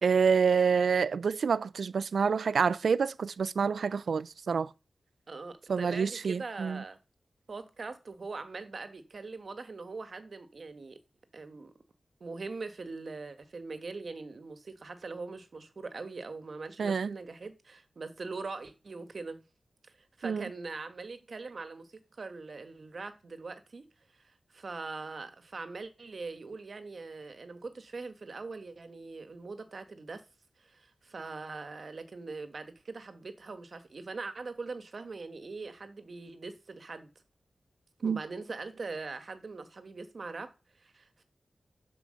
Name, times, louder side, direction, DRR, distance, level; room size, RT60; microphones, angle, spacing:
voice 1, 0.0-4.7 5.7-6.8 16.8-17.2 20.2-20.5 38.0-38.2, right 6 dB, 80° right, 0.4 m, -27 dB
voice 2, 5.3-7.0 7.5-11.0 11.3-11.7 12.2-19.4 19.9-23.9 24.1-30.2 30.6-37.1 38.0-41.2, right 3 dB, 55° right, 1.3 m, -42 dB
11.0 x 4.9 x 6.4 m
wide cardioid pair, 105°, 0 cm